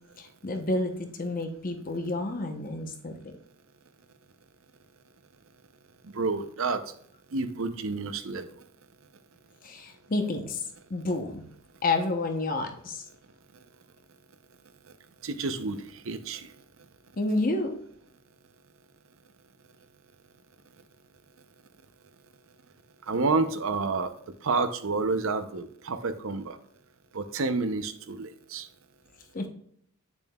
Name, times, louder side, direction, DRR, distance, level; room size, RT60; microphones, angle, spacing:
voice 1, 0.2-3.3 9.6-11.5 11.8-13.0 17.2-17.8 29.3-29.5, left 2 dB, 40° left, 5 dB, 0.8 m, -30 dB
voice 2, 6.1-6.8 7.3-8.5 15.2-16.5 23.1-24.1 24.4-26.6 27.1-28.7, right 3 dB, 60° right, 10 dB, 0.6 m, -29 dB
8.2 x 7.0 x 2.3 m, 0.64 s
head